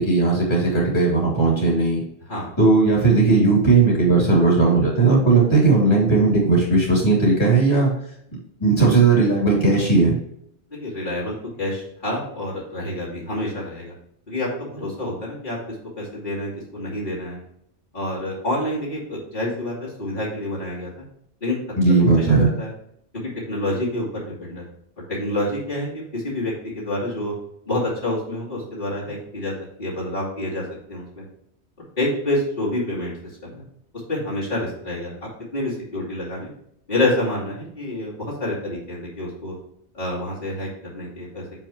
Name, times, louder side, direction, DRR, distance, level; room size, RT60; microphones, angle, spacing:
voice 1, 0.0-2.0 2.6-7.9 8.6-10.2 21.8-22.5, right 3 dB, 25° left, -5 dB, 2.8 m, -17 dB
voice 2, 10.7-13.9 14.3-17.4 17.9-20.9 21.4-21.6 22.2-22.7 23.2-24.7 25.1-27.3 27.7-30.6 30.9-31.3 32.0-33.1 33.4-33.6 34.1-35.1 35.5-36.5 36.9-39.5 39.9-41.4, left 1 dB, 45° left, -9 dB, 2.8 m, -28 dB
7.3 x 5.8 x 3.0 m, 0.72 s
omnidirectional pair, 1.1 m